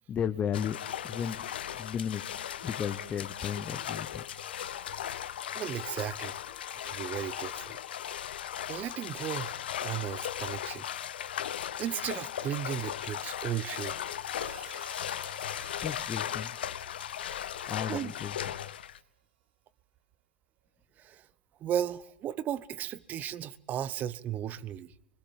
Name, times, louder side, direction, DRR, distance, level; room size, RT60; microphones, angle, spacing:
voice 1, 0.1-0.8 1.0-1.4 1.7-2.3 2.6-4.2 15.8-16.6 17.7-18.4, left 8 dB, 25° left, 1.0 m, -34 dB
sound 1, 0.5-19.0, left 10 dB, 75° left, 0.9 m, -37 dB
sound 2, 4.4-16.2, left 13 dB, 50° left, 2.0 m, -54 dB
voice 2, 5.5-6.4 6.9-7.8 8.7-9.5 9.8-10.8 11.8-14.0 17.9-18.1 21.0-21.2 21.6-24.9, right 10 dB, 30° right, 1.0 m, -35 dB
Hi-hat, 14.4-18.7, right 8 dB, 70° right, 2.7 m, -53 dB
25.0 x 20.5 x 7.3 m
hypercardioid pair, 115°, 5 cm